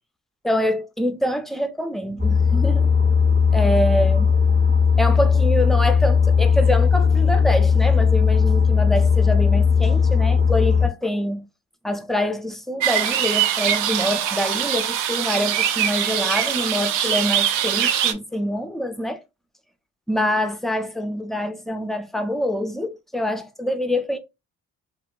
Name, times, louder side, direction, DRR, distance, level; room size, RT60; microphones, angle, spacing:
voice 1, 0.4-2.9 3.5-4.3 5.0-11.5 11.8-19.2 20.1-24.2, equal, ahead, 0.3 m, -25 dB
sound 1, 2.2-10.9, left 6 dB, 35° right, 0.7 m, -17 dB
sound 2, 12.8-18.1, right 10 dB, 90° right, 0.5 m, -22 dB
2.7 x 2.2 x 2.3 m
cardioid pair, 90°, 30 cm